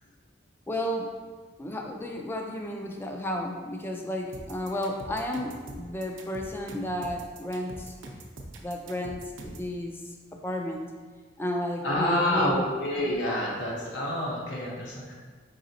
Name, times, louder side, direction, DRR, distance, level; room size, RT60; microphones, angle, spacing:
voice 1, 0.7-1.2 1.6-7.9 8.6-10.0 10.4-10.9 11.4-12.6, left 1 dB, 10° left, 2 dB, 0.3 m, -32 dB
sound 1, 4.3-9.7, right 1 dB, 90° right, 0.6 m, -43 dB
voice 2, 11.8-15.1, left 1 dB, 75° left, -3 dB, 1.0 m, -28 dB
4.9 x 4.0 x 2.7 m, 1.5 s
head